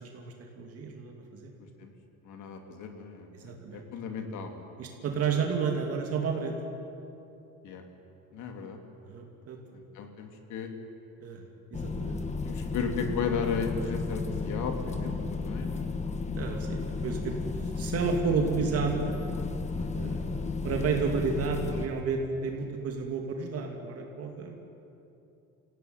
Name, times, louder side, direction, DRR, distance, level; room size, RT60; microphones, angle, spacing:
voice 1, 0.0-1.5 3.3-3.8 4.8-6.6 9.0-9.6 11.2-12.2 16.3-17.4 17.7-19.2 19.9-24.6, right 5 dB, 50° right, 2 dB, 2.7 m, -31 dB
voice 2, 2.2-4.7 7.6-7.8 8.3-8.8 9.7-10.7 12.5-15.9 19.8-20.2, left 5 dB, 70° left, 4 dB, 3.1 m, -35 dB
sound 1, 11.7-21.9, left 4 dB, 20° left, 1.4 m, -33 dB
27.0 x 16.5 x 9.5 m, 2.8 s
cardioid pair, 165°, 31 cm